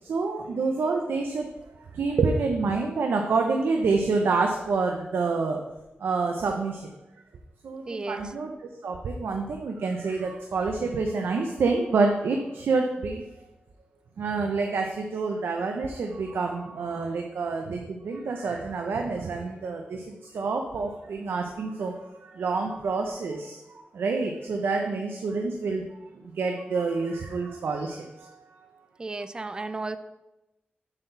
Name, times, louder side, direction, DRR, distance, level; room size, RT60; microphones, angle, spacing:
voice 1, 0.0-1.5 1.8-5.6 6.0-6.9 7.6-8.5 8.8-13.2 14.2-23.6 23.9-28.7, right 4 dB, 90° right, 3 dB, 0.7 m, -28 dB
voice 2, 7.9-8.3 29.0-30.0, right 3 dB, 25° right, 11 dB, 0.4 m, -33 dB
7.1 x 4.6 x 6.7 m, 0.98 s
wide cardioid pair, 140°, 4 cm